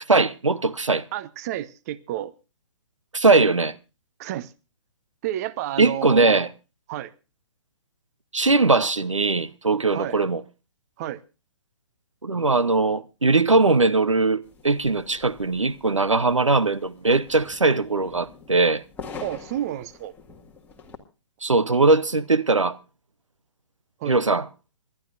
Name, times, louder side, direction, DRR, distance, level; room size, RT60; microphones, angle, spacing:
voice 1, 0.0-1.0 3.1-3.7 5.8-6.5 8.3-10.4 12.2-18.8 21.4-22.8 24.0-24.4, right 3 dB, 90° right, 0.9 m, -20 dB
voice 2, 1.1-2.3 4.2-4.5 5.2-6.5 6.9-7.1 9.9-10.2 11.0-11.2 19.2-20.1 24.0-24.2, right 12 dB, 30° right, 0.8 m, -30 dB
sound 1, 14.4-21.0, left 5 dB, 10° left, 1.8 m, -44 dB
27.0 x 12.0 x 2.6 m
figure-of-eight pair, 130°, 16 cm